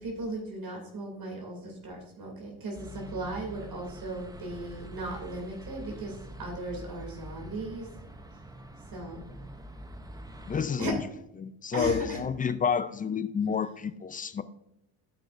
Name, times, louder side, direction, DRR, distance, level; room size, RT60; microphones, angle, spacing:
voice 1, 0.0-7.9 8.9-9.3 10.8-10.9 11.7-12.2, right 1 dB, 50° right, 0 dB, 2.8 m, -37 dB
sound 1, 2.7-10.7, right 1 dB, 10° right, 0.7 m, -45 dB
voice 2, 10.5-11.0 11.4-14.4, left 6 dB, 20° left, 13 dB, 0.3 m, -29 dB
13.5 x 5.9 x 2.6 m, 0.80 s
cardioid pair, 100°, 45 cm